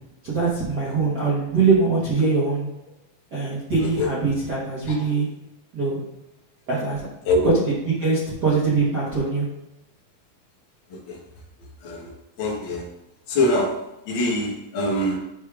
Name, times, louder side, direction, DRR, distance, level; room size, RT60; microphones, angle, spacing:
voice 1, 0.2-2.7 3.3-5.3 5.7-6.0 6.7-7.1 7.4-9.5, right 4 dB, 70° right, -9 dB, 0.9 m, -22 dB
voice 2, 11.8-12.1 12.4-12.9 13.3-15.2, left 1 dB, 90° left, -3 dB, 1.0 m, -24 dB
11.0 x 4.7 x 2.4 m, 0.92 s
omnidirectional pair, 4.3 m